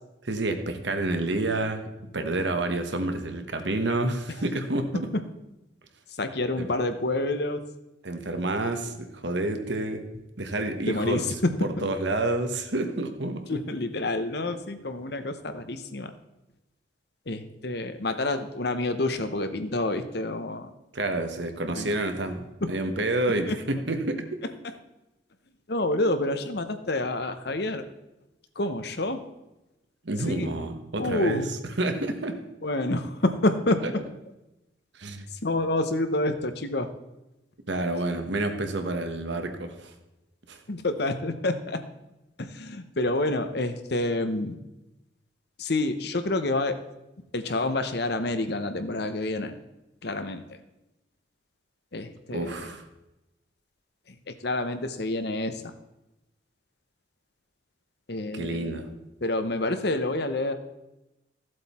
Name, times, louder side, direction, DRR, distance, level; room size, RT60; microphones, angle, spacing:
voice 1, 0.2-1.9 2.1-5.1 6.6-6.7 8.0-10.0 10.4-11.3 11.6-13.4 20.9-24.2 30.0-32.3 33.8-33.9 34.9-35.3 37.7-39.9 40.5-40.6 52.3-52.8 58.3-58.9, right 2 dB, 65° right, 6 dB, 1.3 m, -29 dB
voice 2, 6.2-7.6 10.9-11.5 11.8-11.9 13.5-16.1 17.3-20.7 21.7-21.9 22.6-22.7 23.5-23.6 25.7-27.8 28.6-29.2 30.3-30.5 31.0-31.5 32.6-33.8 35.4-36.9 40.7-41.8 42.4-44.5 45.6-46.8 47.3-49.5 50.0-50.4 51.9-52.6 54.3-55.7 58.1-58.8 59.2-60.5, left 2 dB, 55° left, 9 dB, 0.9 m, -28 dB
15.0 x 7.7 x 4.3 m, 0.97 s
head